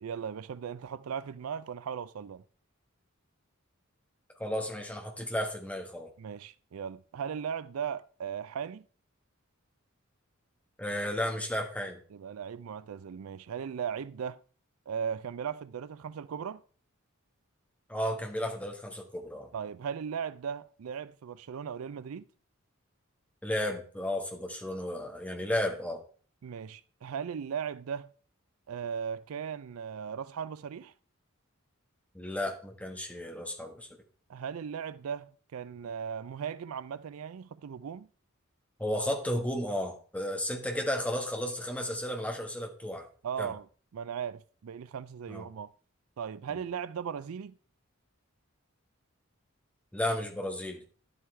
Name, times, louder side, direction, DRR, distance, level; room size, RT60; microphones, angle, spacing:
voice 1, 0.0-2.4 6.2-8.8 12.1-14.4 14.9-16.6 19.5-22.2 26.4-28.1 28.7-30.9 34.3-38.1 43.2-43.7 43.9-45.7 46.2-47.5, right 7 dB, 85° right, 0.4 m, -37 dB
voice 2, 4.4-6.1 10.8-12.0 17.9-19.5 23.4-26.0 32.1-33.9 38.8-43.1 43.4-43.5 45.3-45.4 46.5-46.6 49.9-50.8, left 1 dB, 5° left, 1.4 m, -33 dB
11.5 x 7.9 x 3.2 m
head